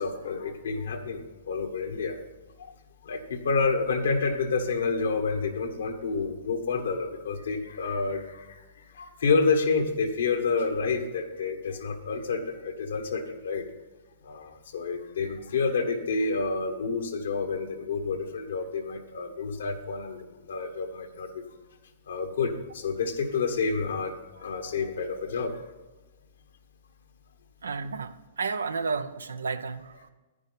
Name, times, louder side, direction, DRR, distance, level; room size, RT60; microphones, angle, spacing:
voice 1, 0.0-2.1 3.0-8.6 9.0-13.6 14.2-21.3 22.1-25.5, left 4 dB, 75° left, 6 dB, 1.5 m, -29 dB
voice 2, 27.6-30.1, right 4 dB, 85° right, 12 dB, 0.6 m, -32 dB
10.5 x 10.0 x 4.1 m, 1.2 s
hypercardioid pair, 120°, 0 cm